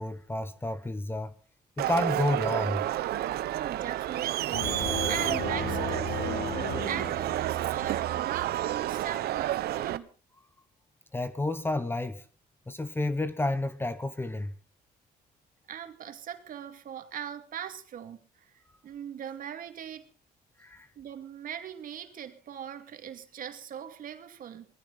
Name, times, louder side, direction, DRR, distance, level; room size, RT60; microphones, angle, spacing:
voice 1, 0.0-1.3 1.8-2.8 3.4-3.6 11.1-12.2 12.7-14.5 20.6-20.9, left 2 dB, 15° left, 1.2 m, -30 dB
Crowd, 1.8-10.0, right 13 dB, 70° right, 1.0 m, -30 dB
voice 2, 3.5-10.1 15.7-20.1 21.0-24.7, right 9 dB, 55° right, 2.5 m, -40 dB
sound 1, 4.5-7.9, left 8 dB, 45° left, 1.6 m, -36 dB
20.5 x 15.5 x 4.2 m
cardioid pair, 110°, 17 cm